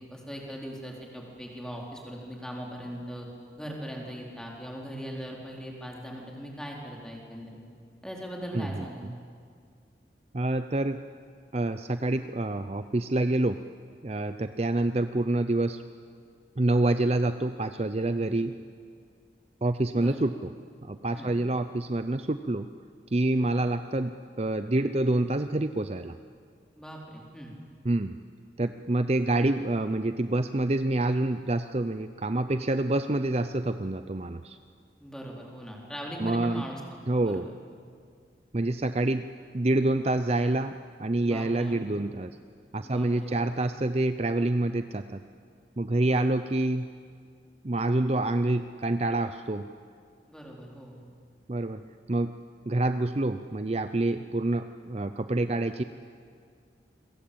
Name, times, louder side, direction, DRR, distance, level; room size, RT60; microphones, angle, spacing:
voice 1, 0.1-3.3 3.6-7.6 8.0-9.2 19.9-20.2 21.1-21.3 23.3-23.5 26.8-27.5 35.0-36.8 37.1-37.4 41.2-41.8 42.8-43.3 46.1-46.2 50.3-51.0, equal, 5° left, -1 dB, 4.2 m, -40 dB
voice 2, 8.5-8.9 10.3-11.0 11.5-13.6 14.0-15.8 16.6-18.6 19.6-20.5 20.8-22.7 23.1-24.1 24.4-26.2 27.8-28.2 28.6-34.6 36.2-36.6 37.1-37.5 38.5-39.2 39.5-42.3 42.7-45.2 45.8-46.9 47.6-49.7 51.5-51.8 52.1-52.3 52.7-55.8, right 2 dB, 35° right, 10 dB, 0.6 m, -27 dB
29.0 x 22.5 x 8.7 m, 2.2 s
head